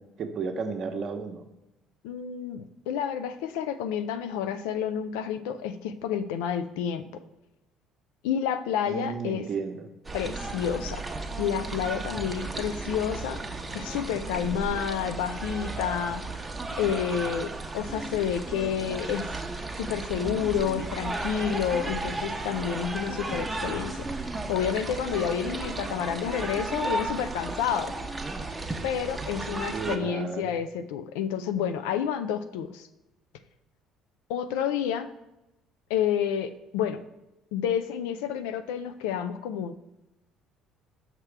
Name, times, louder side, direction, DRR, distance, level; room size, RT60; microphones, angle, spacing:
voice 1, 0.2-1.4 8.9-9.9 29.7-30.5, right 5 dB, 50° right, 5 dB, 0.8 m, -33 dB
voice 2, 2.0-7.0 8.2-9.5 10.1-11.0 11.4-13.4 13.7-16.2 16.8-19.3 19.8-27.9 28.8-32.9 34.3-35.1 35.9-37.0 37.5-39.9, left 8 dB, 80° left, 11 dB, 0.4 m, -29 dB
sound 1, 10.0-30.0, right 2 dB, 20° right, 0.8 m, -34 dB
5.9 x 5.8 x 3.3 m, 0.93 s
hypercardioid pair, 70°, 0 cm